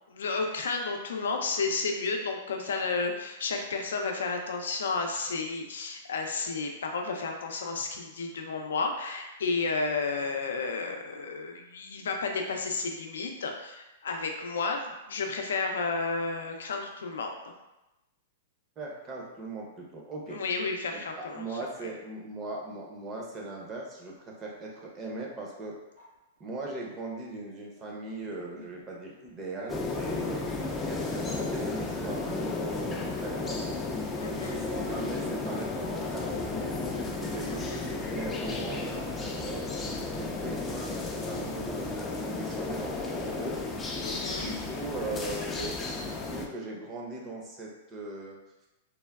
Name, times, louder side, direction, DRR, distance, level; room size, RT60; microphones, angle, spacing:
voice 1, 0.1-14.8 15.1-17.3 20.3-21.4 21.8-21.9 34.2-34.6 37.5-37.8 44.0-44.5, left 4 dB, 85° left, 3 dB, 0.4 m, -32 dB
voice 2, 18.8-20.4 20.9-25.8 26.4-33.7 34.3-36.8 37.2-43.6 44.3-45.8 46.2-48.4, right 2 dB, 25° right, -2 dB, 0.6 m, -39 dB
sound 1, 25.9-26.7 27.4-38.2, left 1 dB, 80° right, 1.3 m, -53 dB
sound 2, 29.7-46.5, left 3 dB, 15° left, 0.3 m, -33 dB
3.3 x 2.2 x 2.3 m, 0.96 s
hypercardioid pair, 135°, 0 cm